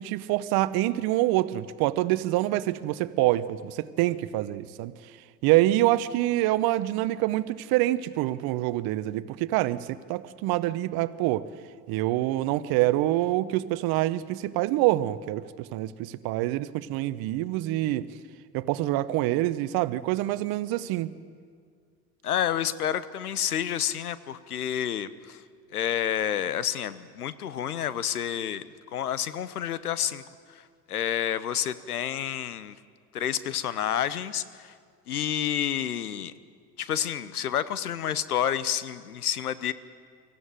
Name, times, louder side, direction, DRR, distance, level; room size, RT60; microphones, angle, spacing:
voice 1, 0.0-4.9 5.4-11.5 11.9-18.1 18.5-21.1, right 16 dB, 55° right, 15 dB, 1.0 m, -26 dB
voice 2, 22.2-25.4 25.7-28.6 28.9-30.2 30.5-30.6 30.9-32.8 33.1-34.7 35.1-36.3 36.8-39.7, left 10 dB, 85° left, 16 dB, 0.9 m, -29 dB
23.5 x 15.0 x 9.1 m, 2.1 s
hypercardioid pair, 65°, 44 cm